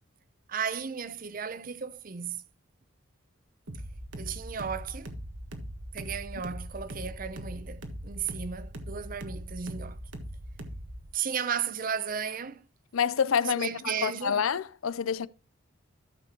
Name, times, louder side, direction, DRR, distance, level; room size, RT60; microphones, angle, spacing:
voice 1, 0.5-2.4 4.2-5.1 5.9-10.0 11.1-12.6 13.5-14.4, right 7 dB, 40° right, 0.6 m, -34 dB
sound 1, 3.7-11.1, equal, 65° right, 1.5 m, -41 dB
voice 2, 12.9-13.7 14.0-15.3, left 7 dB, 80° left, 0.5 m, -27 dB
13.0 x 6.9 x 2.9 m
head